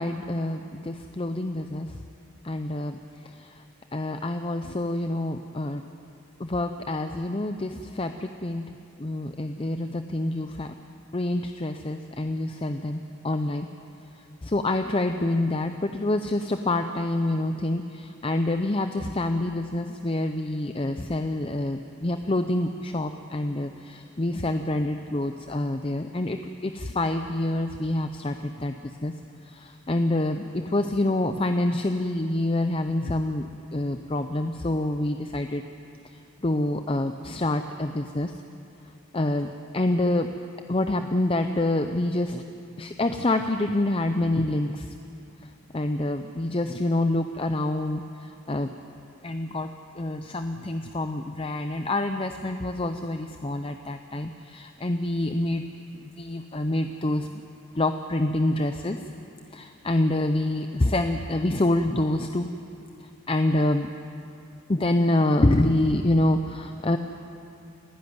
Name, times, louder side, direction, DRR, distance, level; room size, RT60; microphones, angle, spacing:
voice 1, 0.0-2.0 2.4-3.0 3.2-3.6 3.9-5.8 6.4-8.7 9.0-10.7 11.1-13.7 14.4-29.1 29.5-35.6 36.1-38.3 39.1-40.3 40.7-42.4 42.8-45.0 45.7-48.7 49.2-49.7 50.0-55.7 56.0-57.3 57.7-59.1 59.5-62.5 63.3-63.9 64.7-67.0, left 1 dB, 25° left, 7 dB, 0.5 m, -27 dB
29.5 x 11.0 x 9.5 m, 2.6 s
head